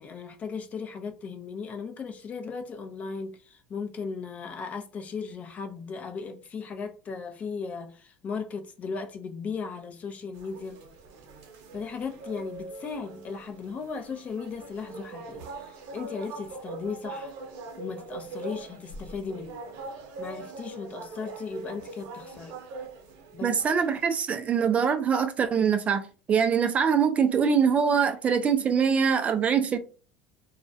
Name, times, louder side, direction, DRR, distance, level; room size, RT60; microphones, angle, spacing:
voice 1, 0.0-10.8 11.7-17.3 17.8-19.6 20.2-22.6 23.3-23.8, left 5 dB, 35° left, 0.5 m, -37 dB
sound 1, 10.3-24.0, right 3 dB, 65° right, 0.7 m, -42 dB
voice 2, 23.4-29.8, right 6 dB, 30° right, 0.3 m, -23 dB
2.3 x 2.1 x 2.5 m
supercardioid pair, 105°, 4 cm